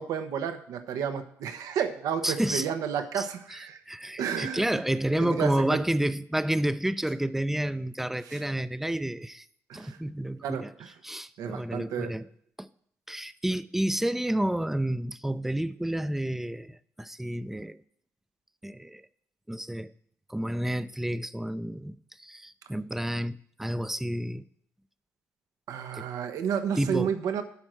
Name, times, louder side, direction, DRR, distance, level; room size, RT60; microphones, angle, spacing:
voice 1, 0.0-3.8 4.2-4.8 5.2-5.8 8.3-8.4 9.7-10.0 10.4-10.9 11.4-12.1 25.7-27.4, right 8 dB, 85° right, 8 dB, 1.0 m, -31 dB
voice 2, 2.2-2.7 3.2-9.5 9.7-10.7 11.0-12.3 12.6-12.7 13.1-17.8 18.6-19.1 19.5-19.9 20.3-24.4 25.9-26.1 26.8-27.1, right 1 dB, 5° right, 14 dB, 0.5 m, -30 dB
11.0 x 4.4 x 7.7 m, 0.65 s
cardioid pair, 75°, 6 cm